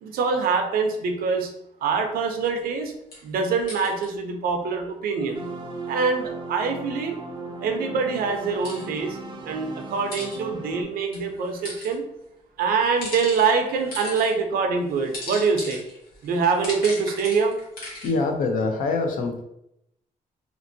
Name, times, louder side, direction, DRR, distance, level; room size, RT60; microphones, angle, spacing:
voice 1, 0.0-1.5 1.8-2.9 3.2-5.4 5.9-7.2 7.6-9.2 9.4-12.0 12.6-15.8 16.2-17.5, right 5 dB, 85° right, 4 dB, 0.5 m, -24 dB
sound 1, 2.4-2.6 3.1-4.1 8.3-8.9 9.9-10.4 11.1-11.9 12.7-14.3 14.9-18.1, left 1 dB, 85° left, 1.1 m, -38 dB
sound 2, 5.3-10.8, right 3 dB, 30° right, 0.5 m, -37 dB
voice 2, 18.0-19.4, left 3 dB, 65° left, 4 dB, 0.5 m, -24 dB
2.8 x 2.6 x 2.6 m, 0.82 s
cardioid pair, 105°, 15 cm